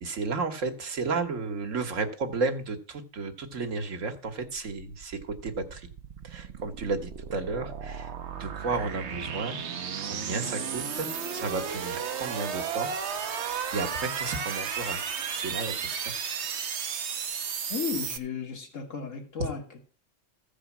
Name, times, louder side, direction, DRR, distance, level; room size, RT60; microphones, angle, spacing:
voice 1, 0.0-5.9 6.2-8.1 8.4-9.6 10.0-12.9 13.7-15.0 15.3-16.1 19.4-19.5, right 3 dB, 80° right, 5 dB, 1.8 m, -33 dB
sound 1, 4.6-18.2, right 7 dB, 60° right, 1.1 m, -34 dB
voice 2, 17.7-19.8, left 7 dB, 75° left, 4 dB, 2.0 m, -34 dB
14.5 x 4.9 x 7.3 m, 0.39 s
omnidirectional pair, 1.3 m